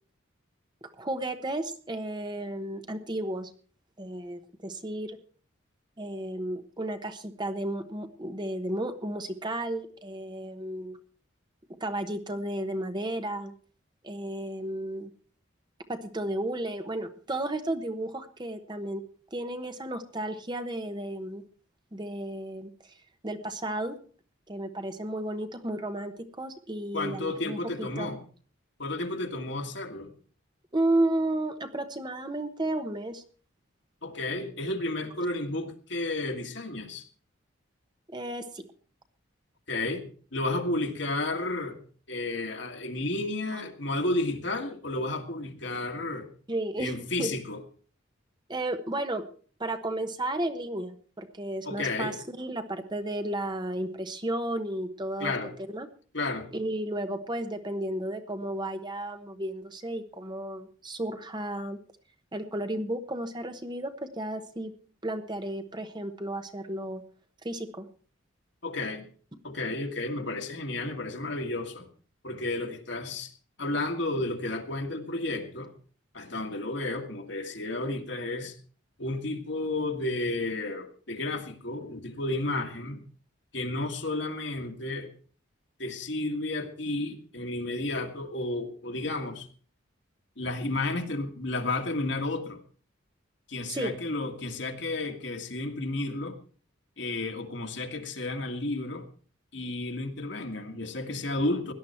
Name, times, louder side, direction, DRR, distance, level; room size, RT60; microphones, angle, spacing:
voice 1, 0.8-3.5 4.0-5.2 6.0-11.0 11.8-13.5 14.0-15.1 15.9-19.0 19.3-21.4 21.9-22.7 23.2-24.0 24.5-28.1 30.7-33.2 38.1-38.7 43.5-43.6 46.5-47.4 48.5-49.2 49.6-55.3 55.7-55.9 56.5-61.8 62.3-64.7 65.0-67.0 67.4-67.9 93.7-93.9, right 1 dB, 20° right, 8 dB, 1.0 m, -33 dB
voice 2, 26.9-28.2 28.8-30.1 34.0-37.0 39.7-40.1 40.3-41.8 42.1-46.3 46.8-47.6 51.7-52.2 55.2-55.5 56.1-56.5 68.6-69.0 69.4-71.9 72.2-73.3 73.6-75.7 76.1-78.6 79.0-83.0 83.5-85.1 85.8-89.5 90.4-92.6 93.5-96.4 97.0-99.1 99.5-101.7, left 2 dB, 60° left, 4 dB, 1.9 m, -32 dB
17.0 x 11.5 x 4.4 m, 0.42 s
head